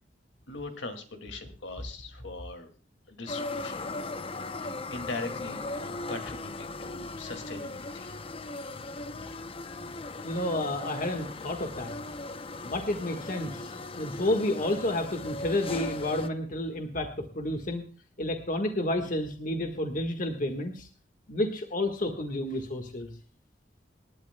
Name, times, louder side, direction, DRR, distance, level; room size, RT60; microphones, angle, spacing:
voice 1, 0.5-2.7 3.1-3.9 4.1-8.2 8.6-8.8 9.2-9.4, left 3 dB, 75° left, 6 dB, 2.2 m, -41 dB
sound 1, 3.3-16.3, left 2 dB, 30° left, 0.6 m, -38 dB
voice 2, 10.2-11.9 12.6-17.8 18.2-20.9 21.3-23.1, left 1 dB, 45° left, 5 dB, 1.5 m, -30 dB
27.0 x 12.0 x 2.2 m, 0.38 s
head